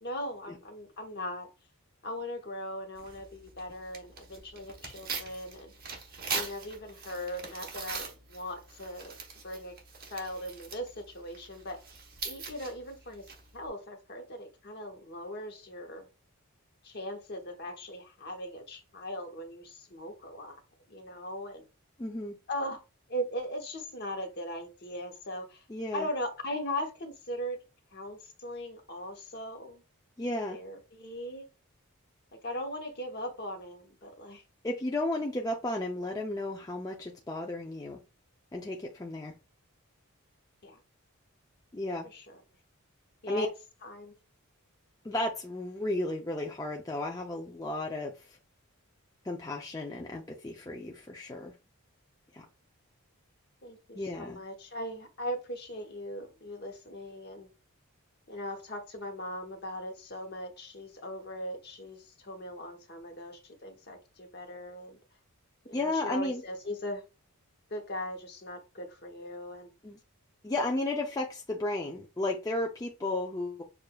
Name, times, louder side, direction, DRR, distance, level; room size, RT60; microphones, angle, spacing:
voice 1, 0.0-1.5 2.0-5.7 6.3-9.2 9.4-9.7 10.1-11.8 12.2-13.2 13.5-16.1 16.8-20.6 20.9-21.7 22.5-22.8 23.1-25.6 25.9-27.6 27.9-29.8 30.5-31.5 32.4-34.4 40.6-40.8 42.0-42.4 43.2-43.5 43.8-44.2 53.6-57.5 58.3-65.0 65.7-67.0 67.7-69.7, equal, 50° left, 0.9 m, -39 dB
Tearing, 2.9-13.7, right 5 dB, 45° right, 1.0 m, -42 dB
voice 2, 22.0-22.4 25.7-26.1 30.2-30.6 34.6-38.0 38.5-39.3 41.7-42.1 43.3-43.5 45.0-48.4 49.2-51.5 52.3-52.5 53.9-54.4 65.7-66.4 69.8-70.0 70.4-73.6, left 2 dB, 15° left, 0.4 m, -33 dB
6.6 x 2.5 x 2.3 m
head